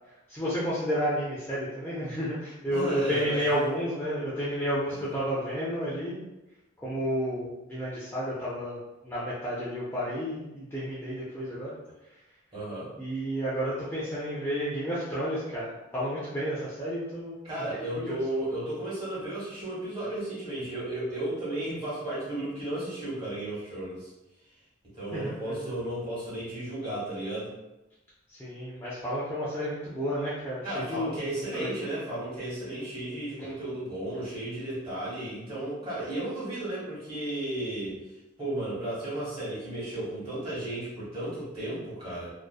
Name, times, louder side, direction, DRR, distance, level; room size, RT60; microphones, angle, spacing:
voice 1, 0.3-6.2 6.8-11.8 13.0-17.4 18.0-18.2 25.1-25.8 28.3-31.2 31.6-31.7 33.4-33.5, equal, 10° left, -9 dB, 0.4 m, -31 dB
voice 2, 2.7-3.5 4.9-5.1 12.5-12.9 17.4-24.1 24.9-27.5 30.6-38.0 38.4-42.3, right 1 dB, 25° right, -9 dB, 1.2 m, -34 dB
2.6 x 2.1 x 2.2 m, 0.96 s
head